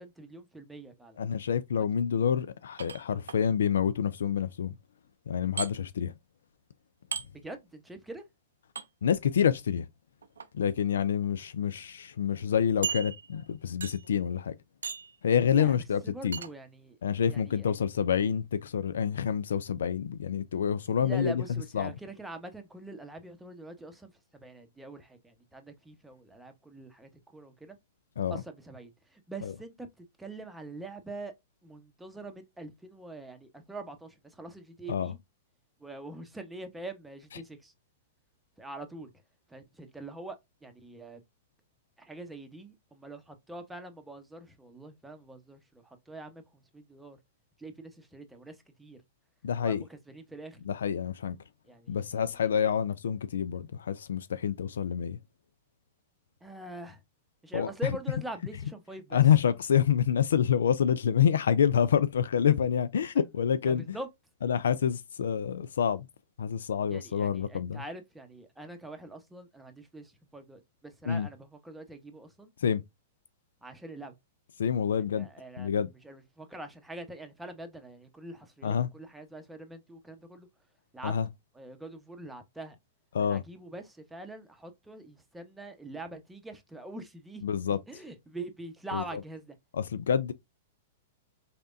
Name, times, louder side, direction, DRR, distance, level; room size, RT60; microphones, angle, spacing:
voice 1, 0.0-1.2 7.4-8.2 15.5-15.8 16.0-17.0 17.3-17.8 21.0-27.8 28.3-31.3 31.6-35.2 35.8-37.7 38.6-39.1 39.5-41.2 42.0-47.2 47.6-49.0 49.6-50.6 51.7-52.5 56.4-57.0 57.4-59.2 63.7-64.1 66.9-72.5 73.6-74.1 75.0-80.5 80.9-81.1 81.5-82.8 83.2-87.4 87.9-89.6, right 2 dB, 5° right, 0.9 m, -44 dB
voice 2, 1.2-4.8 5.3-6.1 9.0-9.9 10.5-14.5 15.2-16.4 17.0-21.4 21.7-21.9 28.2-28.4 29.4-29.5 34.9-35.1 49.4-49.8 50.7-51.4 51.9-55.2 57.5-57.7 59.1-63.8 64.4-66.1 66.4-67.8 71.1-71.3 72.6-72.8 74.6-75.3 75.6-75.9 78.6-78.9 81.0-81.3 83.1-83.4 87.4-87.8 88.9-89.0 89.7-90.3, left 8 dB, 75° left, 0.3 m, -27 dB
sound 1, 2.8-3.4 5.6-5.7 7.1-7.3 8.7-8.9 10.2-10.5 11.2-11.3 11.7-11.8 12.8-13.4 13.8-14.1 14.8-15.2 16.3-16.5, right 6 dB, 85° right, 0.4 m, -36 dB
4.2 x 3.3 x 2.5 m
hypercardioid pair, 115°, 0 cm